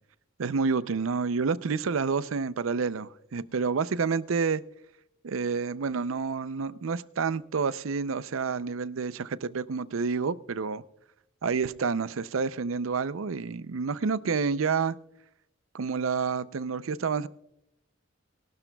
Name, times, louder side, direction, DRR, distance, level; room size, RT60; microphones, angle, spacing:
voice 1, 0.4-4.6 5.2-10.8 11.4-15.0 15.7-17.3, right 5 dB, 80° right, 0.5 m, -29 dB
22.0 x 12.0 x 2.3 m
head